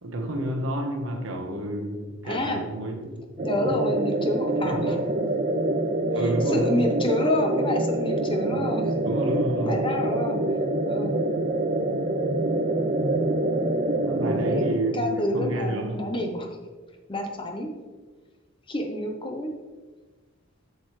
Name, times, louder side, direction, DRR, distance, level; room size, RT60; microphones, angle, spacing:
voice 1, 0.0-3.2 4.6-5.0 6.1-6.9 9.0-9.8 14.1-16.3, right 1 dB, 65° right, 2 dB, 1.1 m, -30 dB
voice 2, 2.2-2.6 3.4-5.0 6.5-9.0 9.6-10.6 10.9-11.2 14.2-14.6 14.9-16.6 17.1-17.7 18.7-19.5, left 1 dB, 25° left, 3 dB, 0.7 m, -28 dB
sound 1, 3.4-14.7, right 1 dB, 35° right, 0.4 m, -25 dB
7.5 x 6.4 x 3.2 m, 1.3 s
head